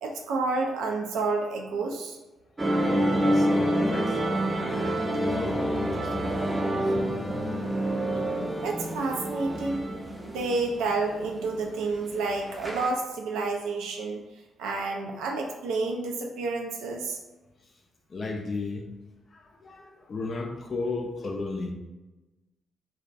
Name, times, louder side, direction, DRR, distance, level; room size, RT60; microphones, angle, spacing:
voice 1, 0.0-2.2 8.6-9.9 10.2-14.2 14.6-17.2, right 3 dB, 70° right, 1 dB, 0.3 m, -29 dB
voice 2, 2.6-7.1 18.1-18.9 19.3-21.7, left 3 dB, 45° left, 2 dB, 0.3 m, -35 dB
sound 1, 2.6-12.9, right 1 dB, 20° right, 0.5 m, -28 dB
2.6 x 2.1 x 2.4 m, 1.1 s
hypercardioid pair, 40°, 0 cm